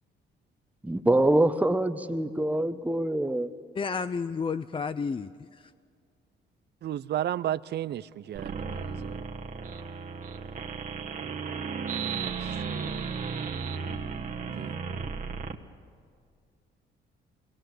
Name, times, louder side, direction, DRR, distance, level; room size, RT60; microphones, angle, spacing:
voice 1, 0.8-3.5, right 1 dB, 5° right, 1.0 m, -25 dB
voice 2, 3.8-5.7, left 5 dB, 25° left, 0.5 m, -31 dB
voice 3, 6.8-9.3 12.4-12.7 14.5-14.8, right 11 dB, 55° right, 0.5 m, -33 dB
sound 1, 8.4-15.6, right 5 dB, 40° right, 1.5 m, -34 dB
22.5 x 20.0 x 7.7 m
cardioid pair, 90°, 20 cm